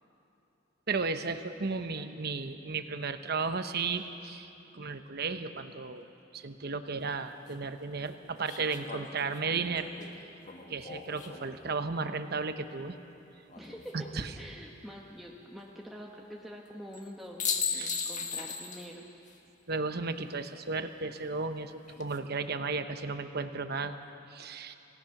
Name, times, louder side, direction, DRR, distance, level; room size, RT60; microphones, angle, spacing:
voice 1, 0.9-4.5 4.7-6.0 6.3-9.9 10.7-13.0 13.9-14.3 17.7-17.9 19.7-23.9 24.3-24.8, right 4 dB, 55° right, 9 dB, 1.0 m, -34 dB
sound 1, 7.0-7.1 8.5-11.7 13.5-14.2 16.9-17.1 17.4-18.9 19.3-19.4 21.7-22.2, left 6 dB, 40° left, 1.6 m, -37 dB
voice 2, 13.6-19.1, equal, ahead, -3 dB, 1.3 m, -46 dB
27.0 x 17.0 x 6.0 m, 2.9 s
head